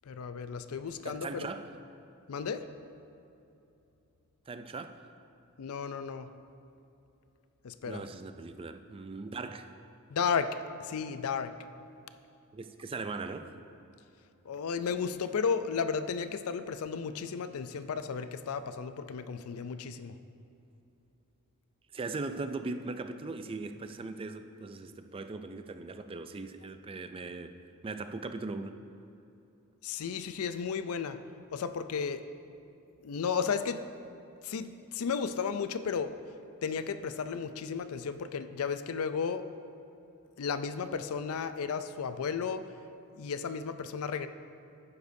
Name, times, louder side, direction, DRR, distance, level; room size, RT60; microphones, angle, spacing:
voice 1, 0.1-1.5 2.3-2.7 5.6-6.3 7.6-8.0 10.1-11.5 14.4-20.2 29.8-31.2 31.5-32.2 33.0-33.8 34.4-36.2 36.6-39.5 40.4-42.7 43.2-44.3, left 6 dB, 70° left, 11 dB, 0.4 m, -34 dB
voice 2, 1.0-1.7 4.5-5.0 7.8-9.7 12.5-13.6 21.9-27.5 27.8-28.7, right 3 dB, 25° right, 9 dB, 0.3 m, -39 dB
11.5 x 9.5 x 2.7 m, 2.8 s
head